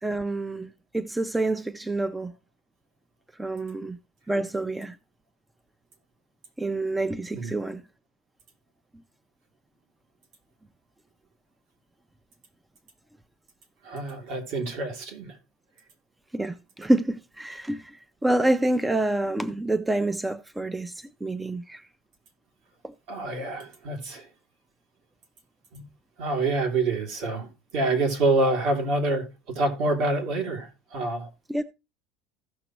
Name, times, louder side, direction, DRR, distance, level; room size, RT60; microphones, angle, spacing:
voice 1, 0.0-2.3 3.4-4.0 4.3-5.0 6.6-7.8 16.3-18.0 18.2-20.9 21.2-21.8 31.5-31.6, right 2 dB, 5° right, 0.4 m, -27 dB
voice 2, 13.8-15.4 23.1-24.3 25.7-25.8 26.2-31.3, right 2 dB, 65° right, 2.6 m, -27 dB
15.5 x 6.0 x 3.0 m
cardioid pair, 150°, 0 cm